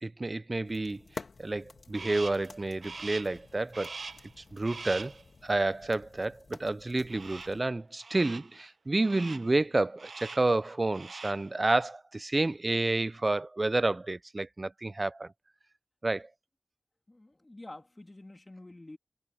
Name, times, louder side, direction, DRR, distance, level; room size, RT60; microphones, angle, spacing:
voice 1, 0.0-1.0 1.4-3.9 4.4-5.1 5.4-15.3 16.0-16.3, right 2 dB, 45° right, 0.4 m, -30 dB
sound 1, 0.6-7.6, left 4 dB, 85° left, 2.5 m, -50 dB
Crow, 1.9-2.5 2.8-3.4 3.7-4.3 4.6-5.2 7.1-7.6 8.0-8.5 9.0-9.5 10.0-10.5 10.9-11.5, right 4 dB, 85° right, 0.8 m, -43 dB
voice 2, 17.1-19.0, left 2 dB, 35° left, 2.8 m, -48 dB
wide cardioid pair, 50°, 0 cm